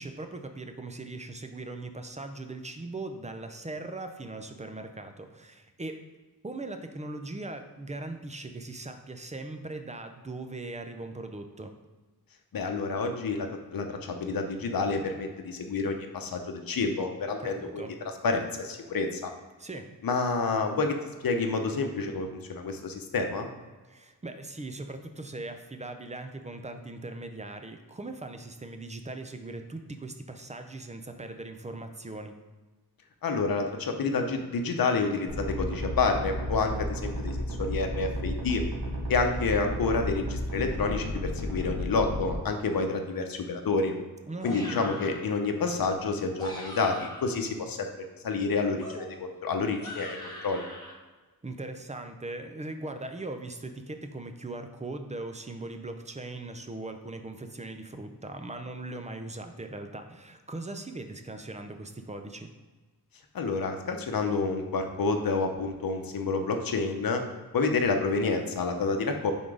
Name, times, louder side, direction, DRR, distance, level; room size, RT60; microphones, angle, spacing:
voice 1, 0.0-6.0 6.4-11.8 17.4-17.9 19.6-19.9 23.9-32.4 44.3-44.8 51.4-62.5, right 2 dB, 20° right, 6 dB, 0.5 m, -39 dB
voice 2, 12.5-17.8 18.2-19.3 20.0-23.5 33.2-38.6 39.1-43.9 44.4-47.9 48.2-50.6 63.3-67.2 67.5-69.3, left 4 dB, 65° left, 4 dB, 0.8 m, -29 dB
sound 1, 35.3-42.4, equal, 80° right, 1.6 m, -33 dB
sound 2, 44.4-45.2 46.2-47.4 48.8-50.9, equal, 10° left, 1.4 m, -42 dB
5.8 x 3.9 x 4.8 m, 1.3 s
wide cardioid pair, 155°, 38 cm